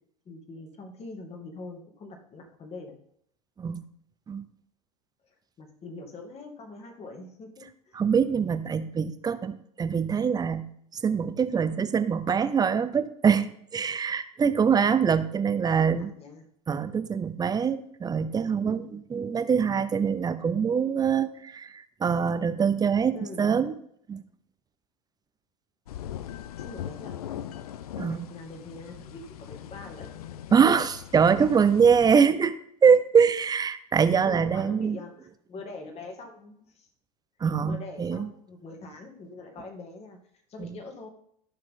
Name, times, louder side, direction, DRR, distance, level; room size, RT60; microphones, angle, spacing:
voice 1, 0.3-3.0 5.2-8.0 16.0-16.4 23.1-23.4 26.5-27.5 28.1-30.1 34.2-36.9 37.6-40.2 40.5-41.1, left 3 dB, 35° left, 3 dB, 2.4 m, -43 dB
voice 2, 7.9-10.6 11.0-16.1 16.7-23.7 24.1-24.2 28.0-28.3 30.5-35.0 37.4-38.3 40.6-40.7, right 6 dB, 20° right, 12 dB, 0.8 m, -24 dB
sound 1, 25.9-32.2, left 10 dB, 80° left, 0.7 m, -40 dB
14.0 x 5.9 x 3.8 m, 0.66 s
hypercardioid pair, 95°, 19 cm